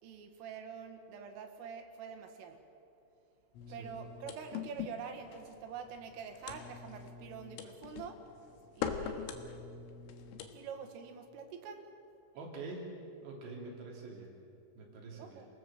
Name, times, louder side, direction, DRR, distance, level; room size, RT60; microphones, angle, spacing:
voice 1, 0.0-2.6 3.7-8.2 8.7-9.3 10.5-11.9 15.2-15.5, right 6 dB, 85° right, 5 dB, 4.4 m, -46 dB
sound 1, 3.6-10.5, left 7 dB, 90° left, 4.0 m, -43 dB
voice 2, 12.3-12.9 13.2-14.3 14.8-15.4, right 3 dB, 60° right, -1 dB, 5.1 m, -45 dB
28.0 x 18.0 x 7.4 m, 2.6 s
omnidirectional pair, 5.6 m